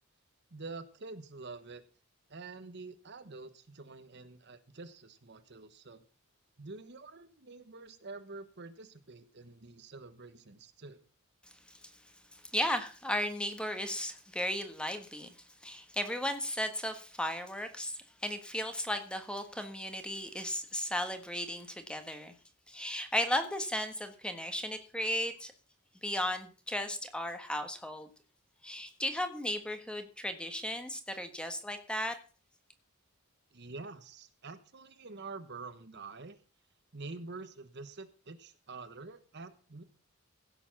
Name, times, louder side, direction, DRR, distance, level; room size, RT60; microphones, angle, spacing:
voice 1, 0.5-1.8 2.3-6.0 6.6-11.0 33.5-36.4 36.9-39.8, right 3 dB, 55° right, 11 dB, 1.1 m, -47 dB
voice 2, 12.3-15.3 15.6-22.3 22.7-25.5 26.0-28.1 28.6-32.2, left 1 dB, 5° left, 7 dB, 1.4 m, -35 dB
16.0 x 7.1 x 5.9 m, 0.38 s
head